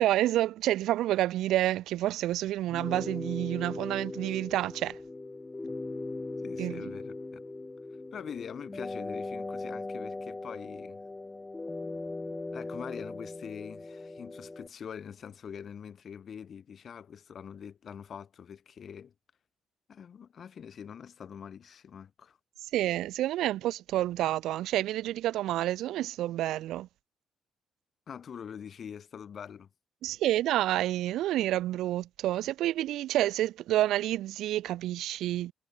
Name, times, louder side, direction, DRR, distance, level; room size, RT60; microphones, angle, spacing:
voice 1, 0.0-5.0 6.6-6.8 22.6-26.9 30.0-35.5, right 14 dB, 85° right, 1.4 m, -29 dB
sound 1, 2.7-14.7, left 2 dB, 20° left, 0.5 m, -39 dB
voice 2, 6.4-7.4 8.1-11.0 12.5-19.1 19.9-22.4 28.1-29.7, left 7 dB, 55° left, 1.9 m, -44 dB
cardioid pair, 90°, 0 cm